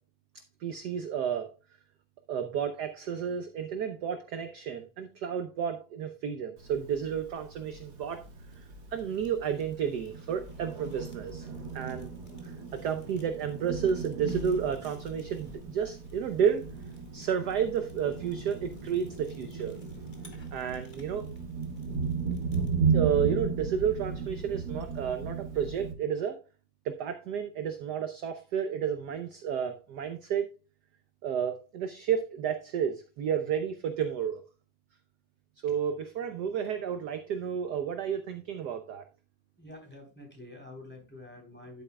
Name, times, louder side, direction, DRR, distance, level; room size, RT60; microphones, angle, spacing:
voice 1, 0.6-1.5 2.3-8.2 8.6-8.7 8.9-11.5 11.7-12.1 12.4-16.7 17.1-19.8 20.5-21.3 22.9-26.4 26.8-30.5 31.2-34.4 35.6-39.0, right 8 dB, 65° right, 8 dB, 1.1 m, -31 dB
Thunder, 6.6-25.9, right 5 dB, 90° right, 2.5 m, -35 dB
Fire, 7.7-22.8, equal, 25° left, 1.7 m, -52 dB
voice 2, 39.6-41.8, left 2 dB, 5° left, 1 dB, 3.4 m, -47 dB
11.0 x 8.8 x 2.3 m, 0.32 s
omnidirectional pair, 2.4 m